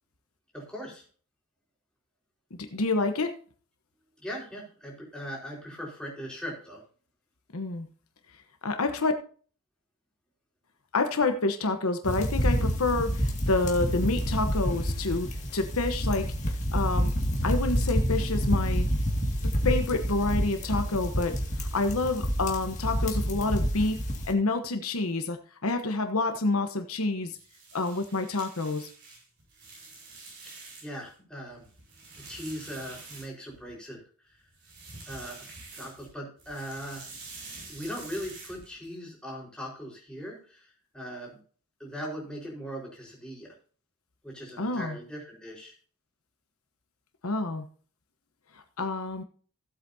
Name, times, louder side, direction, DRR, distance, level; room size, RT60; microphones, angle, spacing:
voice 1, 0.5-1.0 4.2-6.8 30.4-31.6 32.2-34.4 35.1-37.2 37.7-41.4 41.8-43.5 44.2-45.7, equal, 5° left, -4 dB, 4.5 m, -40 dB
voice 2, 2.7-3.3 7.5-7.9 8.6-9.1 10.9-16.3 16.7-17.1 17.4-18.9 19.6-24.0 24.2-27.4 27.7-28.9 44.6-45.0 47.2-47.6 48.8-49.2, left 3 dB, 75° left, 7 dB, 1.1 m, -28 dB
sound 1, 12.0-24.3, equal, 35° left, 2.0 m, -28 dB
sound 2, 27.2-31.1 31.5-33.7 34.5-36.1 36.4-38.9, right 3 dB, 55° right, 6.5 m, -47 dB
16.0 x 8.2 x 2.7 m, 0.42 s
head